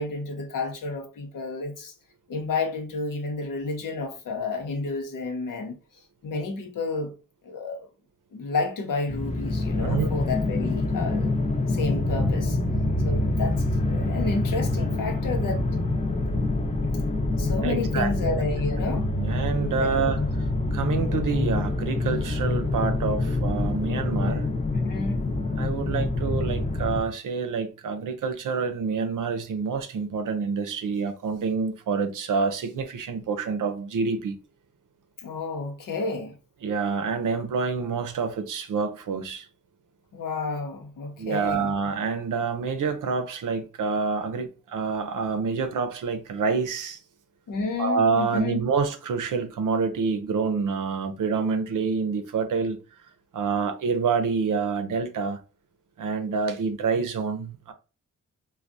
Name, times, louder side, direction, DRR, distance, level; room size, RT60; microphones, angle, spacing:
voice 1, 0.0-1.9 2.3-5.8 6.2-7.1 7.4-7.9 8.3-11.3 11.7-12.6 13.0-15.7 17.4-19.1 19.8-19.9 24.8-25.3 35.2-36.4 40.1-41.7 47.5-48.6, left 3 dB, 80° left, 0.8 m, -31 dB
sound 1, 9.1-27.0, left 2 dB, 20° left, 0.7 m, -26 dB
voice 2, 17.6-18.5 19.2-20.2 20.7-24.5 25.6-34.4 36.6-39.5 41.2-47.0 47.8-52.8 53.3-55.4 56.0-57.7, right 5 dB, 75° right, 0.6 m, -27 dB
3.3 x 2.2 x 2.5 m
cardioid pair, 55°, 32 cm